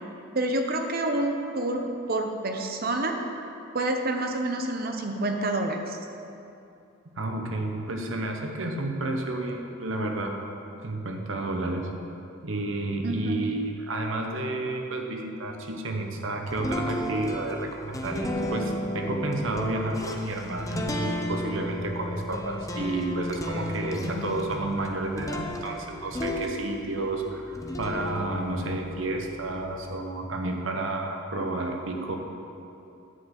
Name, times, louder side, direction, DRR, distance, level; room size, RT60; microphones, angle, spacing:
voice 1, 0.3-3.2 3.7-6.0 13.0-13.4, right 2 dB, 50° right, 4 dB, 0.9 m, -28 dB
voice 2, 7.2-10.4 10.8-11.9 12.4-32.2, right 2 dB, 75° right, 3 dB, 1.0 m, -31 dB
sound 1, 16.5-27.1 27.5-29.9, left 1 dB, 15° left, 0.7 m, -33 dB
10.0 x 5.1 x 8.0 m, 2.7 s
head